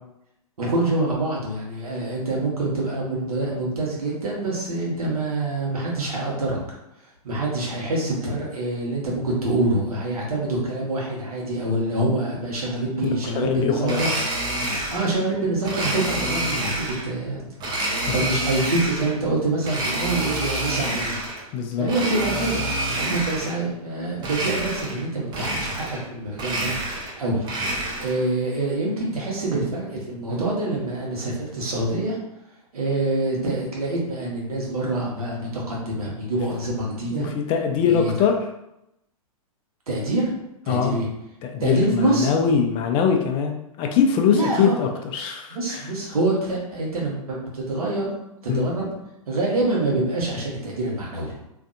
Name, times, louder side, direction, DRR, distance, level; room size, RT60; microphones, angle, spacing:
voice 1, 0.6-6.6 7.2-14.1 14.9-17.5 18.1-21.2 21.8-26.7 27.2-27.4 28.0-32.2 32.7-37.3 37.8-38.1 39.9-40.3 40.6-41.1 41.6-42.3 44.3-44.7 45.5-48.1 48.4-48.9 49.3-51.3, right 2 dB, 80° right, -3 dB, 1.1 m, -25 dB
voice 2, 13.0-14.0 18.1-18.2 21.5-21.9 37.1-38.4 40.7-41.0 41.4-45.9 48.5-48.7, left 7 dB, 30° left, 3 dB, 0.4 m, -22 dB
Domestic sounds home sounds, 13.8-15.1 15.6-17.1 17.6-19.2 19.6-21.4 21.8-23.6 24.2-25.0 25.3-26.1 26.3-28.2, right 1 dB, 25° right, 0.6 m, -28 dB
2.5 x 2.4 x 2.5 m, 0.85 s
hypercardioid pair, 120°, 19 cm